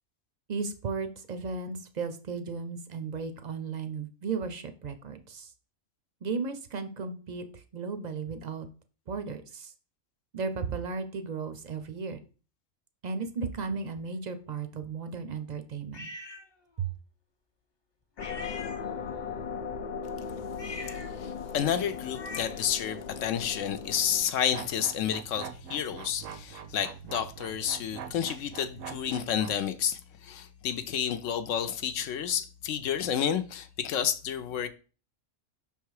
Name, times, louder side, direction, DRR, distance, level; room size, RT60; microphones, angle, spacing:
voice 1, 0.5-5.5 6.2-8.7 9.1-9.7 10.3-12.2 13.0-16.1 16.8-16.9, right 5 dB, 45° right, 0.5 m, -35 dB
sound 1, 15.9-16.5 18.2-19.2 20.5-22.8, left 2 dB, 30° left, 0.5 m, -43 dB
sound 2, 18.2-24.3, left 6 dB, 90° left, 0.4 m, -38 dB
voice 2, 21.2-34.7, left 9 dB, 75° left, 0.9 m, -30 dB
sound 3, 24.5-29.6, right 8 dB, 80° right, 1.0 m, -43 dB
5.7 x 3.7 x 4.7 m
omnidirectional pair, 1.4 m